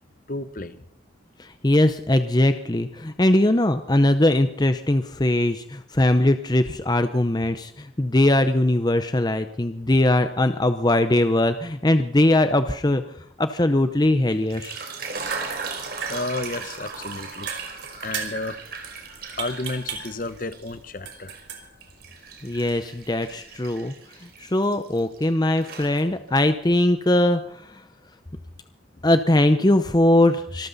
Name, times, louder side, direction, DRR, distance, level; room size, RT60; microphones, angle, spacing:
voice 1, 0.3-0.8 16.1-17.5 18.0-18.6 19.1-21.4, left 2 dB, 45° left, 13 dB, 1.0 m, -32 dB
voice 2, 1.4-13.0 13.4-14.7 22.4-23.9 24.4-27.8 29.0-30.7, left 1 dB, 20° left, 9 dB, 0.7 m, -20 dB
sound 1, 14.3-20.7 21.1-25.3 25.6-26.4, right 4 dB, 50° right, 3.5 m, -37 dB
sound 2, 15.1-23.6, right 6 dB, 75° right, 3.7 m, -39 dB
25.5 x 13.5 x 4.0 m, 0.69 s
head